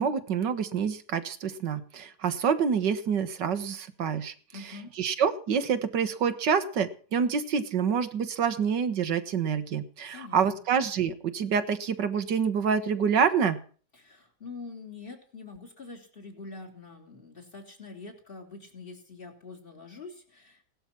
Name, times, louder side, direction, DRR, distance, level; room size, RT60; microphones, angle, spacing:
voice 1, 0.0-4.3 5.0-13.6, right 6 dB, 85° right, 10 dB, 2.0 m, -27 dB
voice 2, 4.5-4.9 10.1-10.4 13.9-20.6, left 4 dB, 30° left, 2 dB, 3.9 m, -45 dB
18.0 x 12.5 x 6.0 m, 0.43 s
omnidirectional pair, 1.8 m